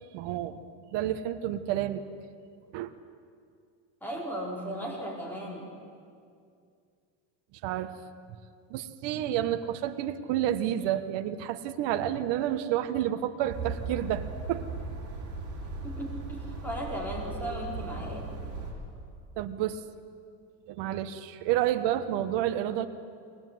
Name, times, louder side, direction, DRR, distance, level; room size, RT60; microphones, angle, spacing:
voice 1, 0.1-0.6 0.9-2.0 2.7-2.9 7.6-8.0 8.7-14.6 19.4-19.8 20.7-22.9, right 11 dB, 60° right, 8 dB, 1.4 m, -30 dB
voice 2, 4.0-5.7 15.8-18.3, right 1 dB, 5° left, -3 dB, 5.1 m, -36 dB
sound 1, 13.5-18.7, right 3 dB, 35° right, 5.7 m, -37 dB
22.5 x 19.0 x 9.4 m, 2.3 s
cardioid pair, 140°, 48 cm